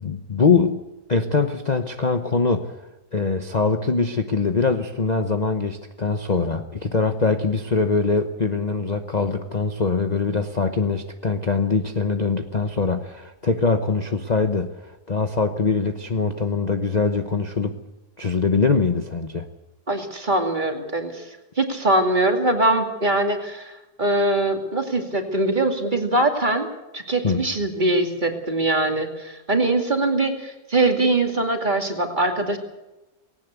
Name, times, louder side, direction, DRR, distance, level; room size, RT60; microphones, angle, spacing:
voice 1, 0.0-2.7 3.1-17.8 18.2-19.5 27.2-27.5, left 4 dB, 30° left, 6 dB, 1.0 m, -23 dB
voice 2, 19.9-21.2 21.6-26.7 26.9-32.6, right 2 dB, 30° right, 4 dB, 2.6 m, -22 dB
19.0 x 17.5 x 8.2 m, 1.0 s
omnidirectional pair, 1.8 m